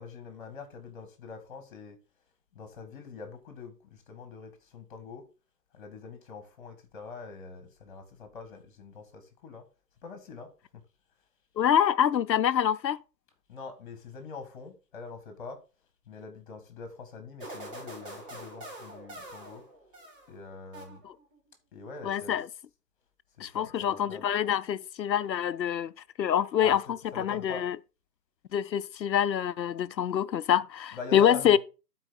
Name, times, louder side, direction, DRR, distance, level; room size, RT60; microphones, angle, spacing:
voice 1, 0.0-2.0 2.5-5.2 5.7-9.7 10.0-10.8 13.5-15.6 16.1-19.7 20.3-21.0 21.7-22.4 23.4-24.2 26.6-27.7 30.9-31.6, left 4 dB, 30° left, 2.0 m, -44 dB
voice 2, 11.6-13.0 21.0-21.1 22.0-22.5 23.4-25.9 26.2-27.8 28.5-31.6, left 9 dB, 85° left, 0.6 m, -26 dB
sound 1, 17.4-20.4 20.7-21.4, right 1 dB, 30° right, 3.4 m, -44 dB
11.5 x 4.6 x 4.0 m
figure-of-eight pair, 150°, 50 cm